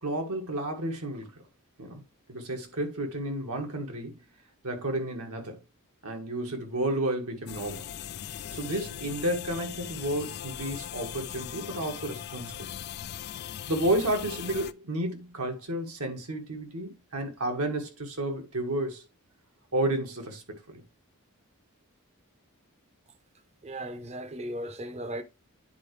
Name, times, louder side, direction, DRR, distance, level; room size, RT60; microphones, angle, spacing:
voice 1, 0.0-1.3 1.8-2.0 2.3-4.2 4.6-5.6 6.0-7.9 8.5-12.7 13.7-19.0 19.7-20.8, right 1 dB, 75° right, 1.9 m, -31 dB
sound 1, 7.5-14.7, left 10 dB, 50° left, 0.3 m, -39 dB
voice 2, 23.6-25.2, right 1 dB, 30° right, 0.8 m, -36 dB
9.5 x 4.5 x 3.3 m
head